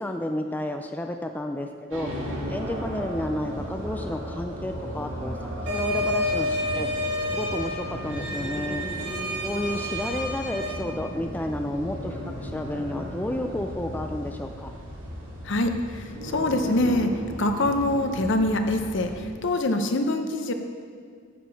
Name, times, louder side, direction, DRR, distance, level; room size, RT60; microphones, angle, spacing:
voice 1, 0.0-2.1 2.5-5.4 5.7-6.9 7.3-8.9 9.4-14.7, left 1 dB, 10° left, 4 dB, 0.3 m, -31 dB
sound 1, 1.9-19.2, equal, 75° right, 2.2 m, -35 dB
sound 2, 5.7-10.7, left 1 dB, 60° right, 2.0 m, -29 dB
voice 2, 15.4-17.1 17.4-20.5, left 1 dB, 65° left, 6 dB, 0.7 m, -24 dB
11.0 x 6.2 x 4.7 m, 2.1 s
head